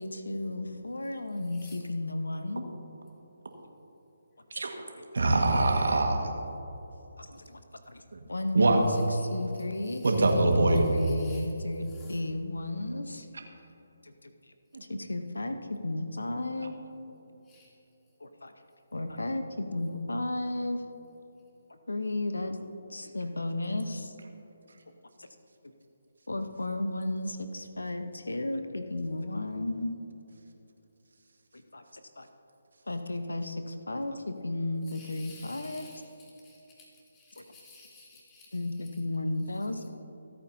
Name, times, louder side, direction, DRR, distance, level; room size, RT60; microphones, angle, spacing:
voice 1, 0.0-2.7 4.5-4.6 4.9-5.0 7.2-7.6 7.9-8.0 8.3-13.3 14.0-14.3 14.9-16.7 18.2-18.5 18.9-20.8 21.9-22.6 22.9-24.1 25.2-25.3 26.3-29.9 31.7-32.3 32.9-35.9 37.4-37.5 38.5-39.9, left 2 dB, 85° left, 8 dB, 0.9 m, -33 dB
voice 2, 5.1-6.3 8.1-8.2 8.6-8.8 10.0-10.8, right 2 dB, 75° right, 3 dB, 1.7 m, -23 dB
voice 3, 11.0-11.4 12.0-12.1 17.5-17.7 34.9-36.0 36.4-36.6 37.1-38.5, left 3 dB, 15° left, -6 dB, 2.9 m, -53 dB
25.0 x 8.9 x 2.8 m, 3.0 s
figure-of-eight pair, 150°, 0 cm